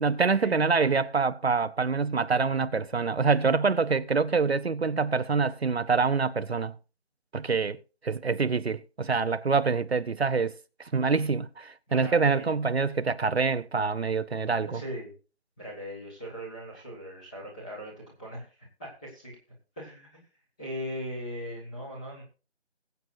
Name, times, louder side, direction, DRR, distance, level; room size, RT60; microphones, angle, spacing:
voice 1, 0.0-6.7 7.3-7.8 8.0-10.5 10.8-14.8, right 4 dB, 65° right, 0.8 m, -26 dB
voice 2, 11.9-12.5 14.7-15.1 15.6-18.4 18.8-19.4 19.8-20.2 20.6-22.2, equal, 5° left, 1.6 m, -39 dB
20.5 x 8.1 x 2.6 m
figure-of-eight pair, 170°, 33 cm